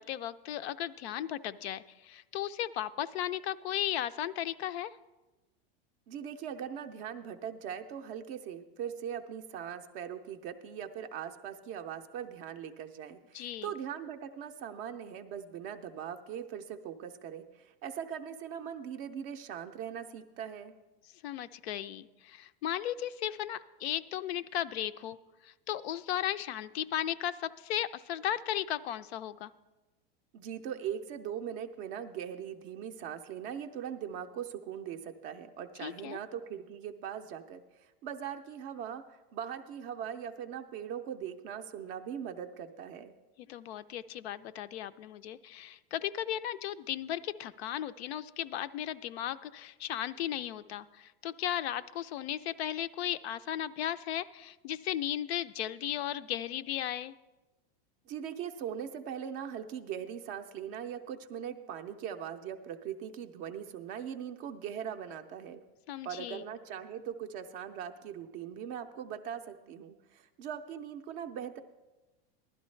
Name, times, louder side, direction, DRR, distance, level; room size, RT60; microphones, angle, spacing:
voice 1, 0.0-4.9 13.3-13.7 21.0-25.2 25.4-29.5 35.8-36.2 43.4-57.1 65.9-66.4, left 11 dB, 90° left, 13 dB, 0.5 m, -36 dB
voice 2, 6.1-20.7 30.3-37.6 38.0-39.0 39.3-43.1 58.1-65.6 66.0-71.6, right 8 dB, 25° right, 8 dB, 0.3 m, -40 dB
15.5 x 11.5 x 3.2 m, 1.1 s
supercardioid pair, 160°, 31 cm